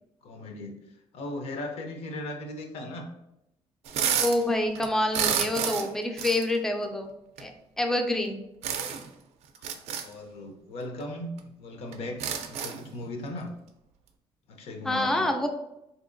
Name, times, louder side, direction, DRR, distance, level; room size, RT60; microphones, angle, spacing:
voice 1, 0.2-0.8 1.1-3.1 9.6-13.5 14.5-15.3, left 1 dB, 70° left, 3 dB, 0.6 m, -38 dB
sound 1, 3.8-4.4 4.7-5.9 6.2-6.4 7.4-7.5 8.6-9.1 9.5-10.0 11.0-11.1 11.4-11.5 11.9-12.9, right 8 dB, 80° right, 0.4 m, -29 dB
voice 2, 4.2-7.5 7.8-8.4 14.8-15.5, left 1 dB, 5° left, 4 dB, 0.3 m, -27 dB
3.8 x 2.7 x 2.5 m, 0.86 s
cardioid pair, 150°, 10 cm